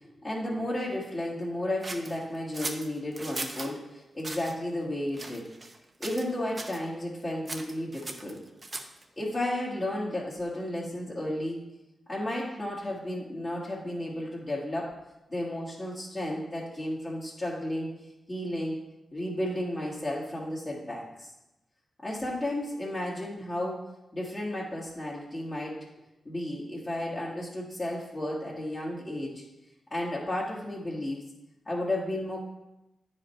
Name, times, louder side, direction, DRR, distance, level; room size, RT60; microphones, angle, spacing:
voice 1, 0.2-5.5 6.0-8.4 9.2-11.6 12.1-14.9 15.3-17.9 18.3-18.8 19.1-21.3 22.0-23.8 24.1-25.9 26.2-29.4 29.9-31.2 31.6-32.5, left 1 dB, 30° left, -7 dB, 1.6 m, -33 dB
sound 1, 1.8-3.7 4.2-4.5 5.1-5.8 6.0-6.3 6.6-6.8 7.5-9.0, right 2 dB, 30° right, 0.9 m, -38 dB
9.3 x 5.1 x 4.3 m, 0.95 s
cardioid pair, 80°, 0 cm